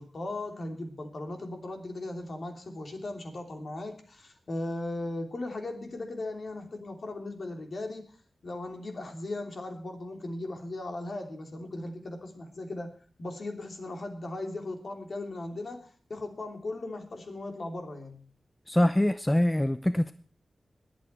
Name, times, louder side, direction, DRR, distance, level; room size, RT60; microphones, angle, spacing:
voice 1, 0.0-8.1 8.4-12.9 13.2-18.2, left 2 dB, 55° left, 4 dB, 3.1 m, -37 dB
voice 2, 18.7-20.1, left 1 dB, 10° left, 11 dB, 0.6 m, -24 dB
21.0 x 8.7 x 4.4 m, 0.43 s
wide cardioid pair, 130°, 0 cm